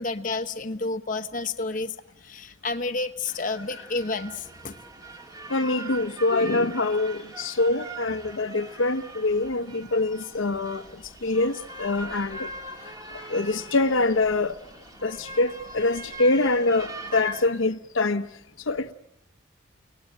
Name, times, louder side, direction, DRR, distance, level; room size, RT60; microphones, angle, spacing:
voice 1, 0.0-1.9 2.2-4.7, left 3 dB, 40° left, 1.0 m, -30 dB
sound 1, 3.3-17.5, right 2 dB, 20° right, 2.2 m, -41 dB
voice 2, 5.5-10.8 11.2-12.5 13.3-14.6 15.0-18.2 18.7-18.9, left 2 dB, 75° left, 1.0 m, -24 dB
30.0 x 19.0 x 8.9 m
head